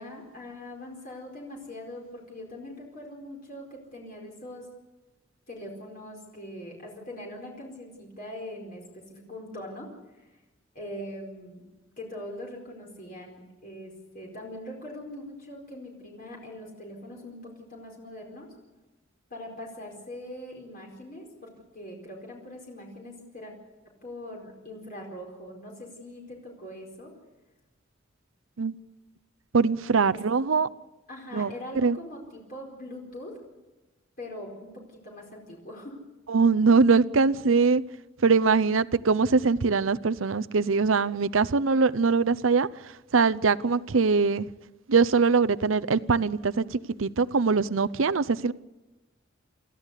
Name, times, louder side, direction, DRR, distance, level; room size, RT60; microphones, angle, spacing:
voice 1, 0.0-4.7 5.5-9.9 10.2-10.3 10.7-11.6 12.0-18.5 19.3-23.5 24.0-27.1 30.1-30.2 31.1-33.4 34.2-36.0, left 1 dB, 45° left, -1 dB, 4.6 m, -42 dB
voice 2, 29.5-30.7 31.3-31.5 31.8-32.0 36.3-37.8 38.2-42.7 43.1-44.5 44.9-48.5, right 4 dB, 85° right, 14 dB, 0.7 m, -22 dB
28.5 x 14.5 x 8.3 m, 1.1 s
head